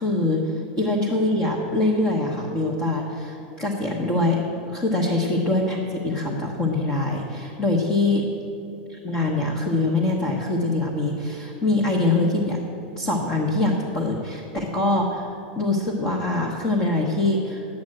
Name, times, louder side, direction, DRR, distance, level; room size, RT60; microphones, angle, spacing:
voice 1, 0.0-4.4 4.7-8.2 8.9-12.6 12.9-17.6, left 2 dB, 20° left, -1 dB, 1.1 m, -24 dB
10.5 x 8.6 x 7.7 m, 2.6 s
supercardioid pair, 175°, 5 cm